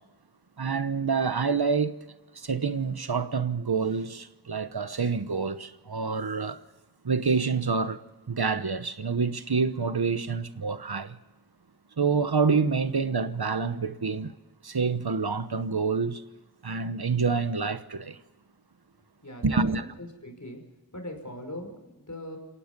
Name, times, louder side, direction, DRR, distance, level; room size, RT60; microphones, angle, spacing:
voice 1, 0.6-2.0 2.3-6.6 7.0-8.0 8.3-11.2 12.0-14.3 14.6-16.2 16.6-18.2 19.4-19.8, right 5 dB, 80° right, 1.1 m, -27 dB
voice 2, 19.2-20.6 20.9-22.4, left 1 dB, 50° left, 5.5 m, -41 dB
29.0 x 17.5 x 5.4 m
wide cardioid pair, 45°, 37 cm